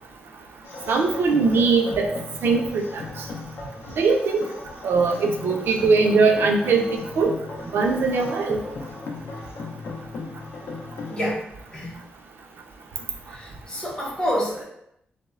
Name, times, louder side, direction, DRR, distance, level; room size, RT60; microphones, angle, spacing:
sound 1, 0.6-11.3, left 3 dB, 80° left, 0.4 m, -36 dB
voice 1, 0.9-2.1 2.4-3.2 4.0-4.5 4.8-7.3 7.7-8.6, right 4 dB, 75° right, 3 dB, 0.4 m, -21 dB
voice 2, 11.1-11.9 13.3-14.6, equal, 20° left, -5 dB, 0.7 m, -28 dB
3.0 x 2.0 x 2.3 m, 0.76 s
wide cardioid pair, 115°, 4 cm